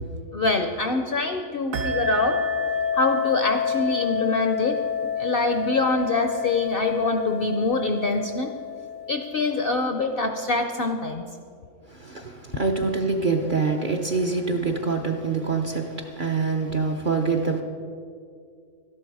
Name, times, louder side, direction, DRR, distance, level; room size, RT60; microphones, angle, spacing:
voice 1, 0.3-2.4 3.0-4.8 5.2-8.5 9.1-11.2, left 3 dB, 55° left, 5 dB, 0.6 m, -24 dB
sound 1, 1.7-9.9, left 6 dB, 70° right, 1.2 m, -28 dB
voice 2, 11.9-17.6, right 4 dB, 50° right, 2 dB, 0.7 m, -25 dB
12.5 x 11.0 x 4.7 m, 2.3 s
omnidirectional pair, 1.5 m